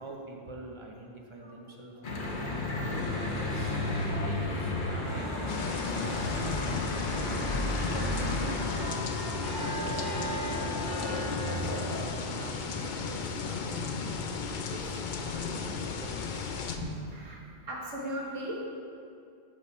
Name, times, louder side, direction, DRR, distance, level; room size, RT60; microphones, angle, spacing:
voice 1, 0.0-2.4 2.8-3.8 4.2-6.8 7.3-9.1 9.5-11.2 11.6-14.3 14.6-16.5, right 2 dB, 30° right, 0 dB, 0.6 m, -45 dB
Church bell / Traffic noise roadway noise, 2.0-12.0, left 1 dB, 45° left, 1.0 m, -32 dB
voice 2, 2.7-3.2 4.0-4.2 4.8-5.0 6.7-7.3 7.9-8.3 10.7-11.1 11.4-11.7 13.6-13.7 16.8-18.6, right 1 dB, 75° right, -3 dB, 1.7 m, -40 dB
sound 1, 5.5-16.8, left 5 dB, 60° left, 0.5 m, -35 dB
6.5 x 5.4 x 5.4 m, 2.5 s
omnidirectional pair, 1.3 m